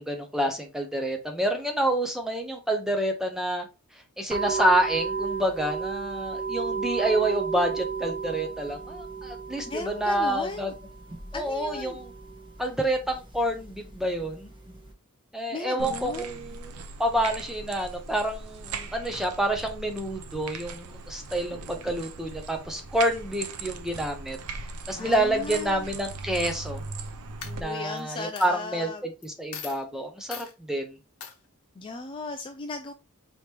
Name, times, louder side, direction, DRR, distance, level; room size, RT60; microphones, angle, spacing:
voice 1, 0.0-3.7 4.2-10.7 11.3-12.1 12.6-14.5 15.3-24.4 24.9-26.8 27.6-31.0, right 1 dB, ahead, 4 dB, 0.8 m, -28 dB
sound 1, 4.3-14.9, right 5 dB, 20° right, 1.3 m, -34 dB
voice 2, 9.7-10.7 11.3-12.0 15.5-16.4 25.0-25.9 27.4-29.0 31.8-32.9, left 3 dB, 25° left, 6 dB, 0.3 m, -36 dB
sound 2, 15.8-27.6, right 4 dB, 80° right, 0.6 m, -39 dB
Coin (dropping), 26.8-27.1 27.4-28.0 28.4-28.5 29.2-29.3 29.5-29.8 30.3-30.5 31.2-31.3, left 7 dB, 70° left, 1.0 m, -39 dB
4.9 x 3.0 x 3.3 m, 0.28 s
head